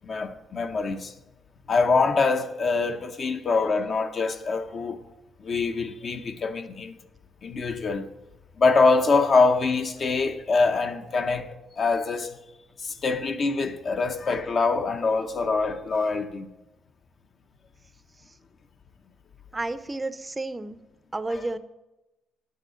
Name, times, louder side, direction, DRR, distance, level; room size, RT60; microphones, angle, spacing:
voice 1, 0.0-1.1 1.7-5.0 5.4-6.9 7.4-8.1 8.6-12.4 12.8-16.5 21.4-21.5, left 4 dB, 50° left, 0.8 m, -24 dB
voice 2, 19.5-20.8 21.1-21.6, right 2 dB, 20° right, 0.6 m, -31 dB
9.1 x 6.7 x 5.0 m
cardioid pair, 90°, 0 cm